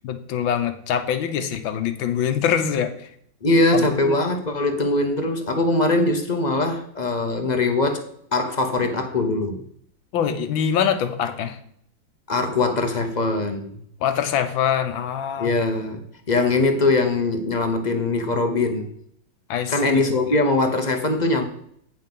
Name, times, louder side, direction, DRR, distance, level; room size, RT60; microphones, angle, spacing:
voice 1, 0.0-3.1 3.7-4.1 10.1-11.6 14.0-15.5 19.5-20.2, left 8 dB, 85° left, 9 dB, 1.7 m, -24 dB
voice 2, 3.4-8.0 8.3-9.6 12.3-13.8 15.4-18.9 19.7-21.4, left 2 dB, 45° left, 6 dB, 0.5 m, -22 dB
8.9 x 5.6 x 5.3 m, 0.67 s
omnidirectional pair, 2.1 m